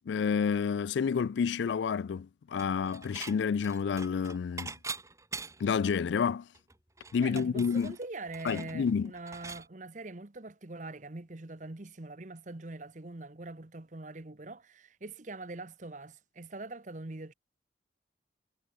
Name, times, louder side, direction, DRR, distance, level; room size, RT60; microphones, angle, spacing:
voice 1, 0.1-4.7 5.6-6.5 7.1-7.9 8.4-9.1, left 6 dB, 75° left, 0.3 m, -29 dB
Dishes pots and pans / Chink clink, 2.6-3.4 3.6-5.8 6.2-6.3 6.5-9.7, right 4 dB, 15° right, 2.2 m, -43 dB
voice 2, 7.2-17.3, right 2 dB, 40° right, 1.0 m, -43 dB
head